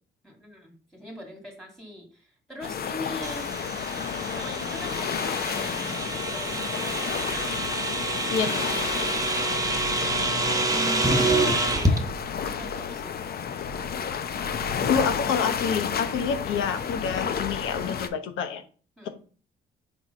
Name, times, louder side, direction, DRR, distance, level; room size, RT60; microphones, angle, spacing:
voice 1, 0.2-3.5 4.2-7.4 10.7-12.0 12.4-13.1 19.0-19.1, equal, ahead, 2 dB, 2.0 m, -41 dB
sound 1, 2.6-18.1, left 7 dB, 50° left, 0.7 m, -31 dB
sound 2, 3.2-12.0, right 2 dB, 15° right, 0.9 m, -27 dB
voice 2, 8.3-8.8 14.9-18.6, left 6 dB, 85° left, 9 dB, 0.9 m, -28 dB
4.6 x 3.8 x 5.4 m, 0.39 s
cardioid pair, 90°, 20 cm